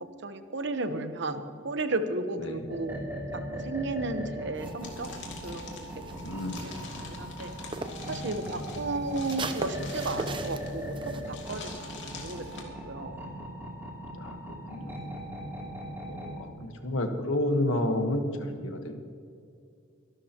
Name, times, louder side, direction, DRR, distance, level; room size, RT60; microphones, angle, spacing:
voice 1, 0.0-3.0 3.5-5.1 5.4-6.0 6.3-7.5 8.1-11.7 12.0-13.2, right 2 dB, 65° right, 8 dB, 1.0 m, -34 dB
sound 1, 2.7-16.4, equal, 10° right, 3.1 m, -39 dB
sound 2, 4.6-8.1 8.4-11.2, right 3 dB, 25° right, 0.7 m, -40 dB
sound 3, 4.8-12.6, left 3 dB, 65° left, 2.6 m, -45 dB
voice 2, 6.2-6.7 14.2-14.4 14.7-15.0 16.1-19.0, left 1 dB, 85° left, 5 dB, 1.4 m, -30 dB
24.0 x 12.0 x 3.0 m, 2.4 s
head